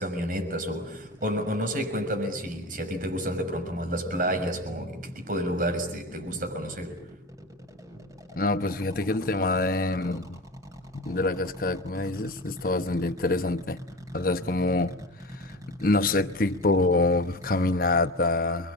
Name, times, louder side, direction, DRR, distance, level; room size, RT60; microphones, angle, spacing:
voice 1, 0.0-7.0, equal, 45° right, 6.2 m, -30 dB
sound 1, 0.7-18.2, equal, 20° right, 6.4 m, -43 dB
voice 2, 8.4-10.4 10.9-13.8 14.1-18.7, left 2 dB, 50° left, 1.0 m, -26 dB
30.0 x 23.0 x 8.7 m
head